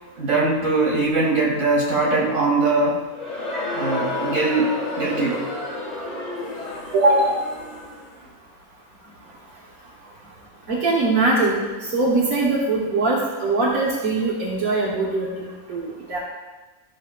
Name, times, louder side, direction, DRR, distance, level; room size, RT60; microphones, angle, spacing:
voice 1, 0.2-3.0 3.7-4.7 5.0-5.4, right 3 dB, 65° right, -4 dB, 2.6 m, -21 dB
Crowd, 3.1-8.1, left 2 dB, 30° left, 1.3 m, -30 dB
voice 2, 6.9-7.4 10.7-16.2, right 2 dB, 85° right, -5 dB, 1.7 m, -21 dB
13.5 x 6.5 x 2.3 m, 1.2 s
omnidirectional pair, 1.5 m